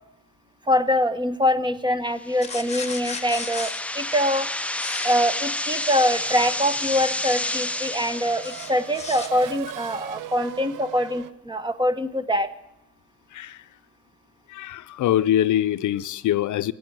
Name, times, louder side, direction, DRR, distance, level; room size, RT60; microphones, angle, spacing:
voice 1, 0.7-4.5 5.0-12.5, equal, 15° right, 0.9 m, -24 dB
sound 1, 2.2-9.2, left 1 dB, 5° left, 0.4 m, -30 dB
sound 2, 2.4-3.8 4.7-5.2 8.4-9.3, left 4 dB, 20° left, 1.3 m, -35 dB
Race car auto racing / Accelerating revving vroom, 5.6-11.3, right 11 dB, 85° right, 0.7 m, -38 dB
voice 2, 14.5-16.7, left 12 dB, 70° left, 0.6 m, -23 dB
16.5 x 8.5 x 9.0 m
cardioid pair, 115°, 31 cm